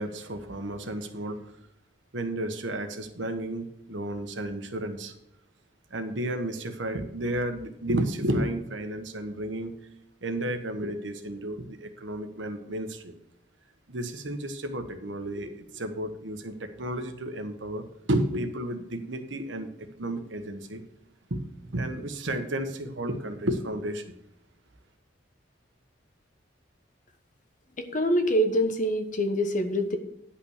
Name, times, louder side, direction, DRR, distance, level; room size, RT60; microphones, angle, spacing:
voice 1, 0.0-1.5 2.1-5.1 5.9-9.7 10.2-13.1 13.9-19.7 20.0-20.8 21.3-21.4 21.7-24.0, right 1 dB, 90° right, 7 dB, 1.3 m, -32 dB
voice 2, 27.8-30.0, equal, 45° left, 7 dB, 1.2 m, -25 dB
10.0 x 5.8 x 6.5 m, 0.80 s
head